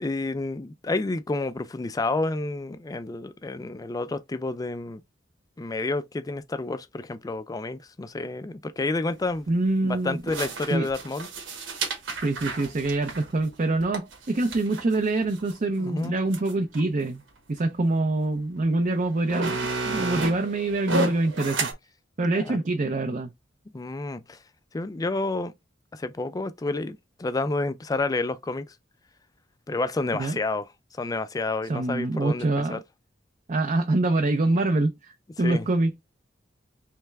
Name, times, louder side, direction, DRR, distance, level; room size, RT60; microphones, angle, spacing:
voice 1, 0.0-5.0 5.6-9.5 9.8-11.3 15.8-16.1 22.2-22.6 23.7-24.4 24.7-25.5 25.9-28.7 29.7-30.7 31.0-32.8 35.4-35.6, left 2 dB, 20° left, 0.3 m, -30 dB
sound 1, 9.1-9.2 10.3-15.5 16.0-16.1 16.3-16.8 17.6-17.7 18.6-18.7 19.0-21.7, right 3 dB, 80° right, 1.1 m, -31 dB
voice 2, 9.5-10.2 10.7-10.9 12.2-17.2 17.5-21.7 22.2-23.3 30.1-30.4 31.7-32.8 33.5-35.1 35.4-35.9, right 2 dB, 40° right, 0.5 m, -25 dB
3.3 x 3.2 x 3.3 m
head